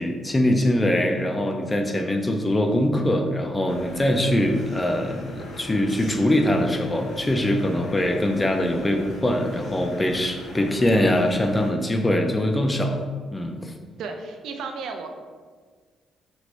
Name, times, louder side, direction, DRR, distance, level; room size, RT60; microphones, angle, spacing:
voice 1, 0.0-13.0 13.3-13.7, left 1 dB, 20° left, 4 dB, 0.4 m, -23 dB
sound 1, 3.7-11.7, left 2 dB, 60° left, 0.6 m, -39 dB
voice 2, 14.0-15.1, right 4 dB, 80° right, 5 dB, 0.3 m, -33 dB
3.0 x 2.9 x 2.5 m, 1.5 s
cardioid pair, 90°, 0 cm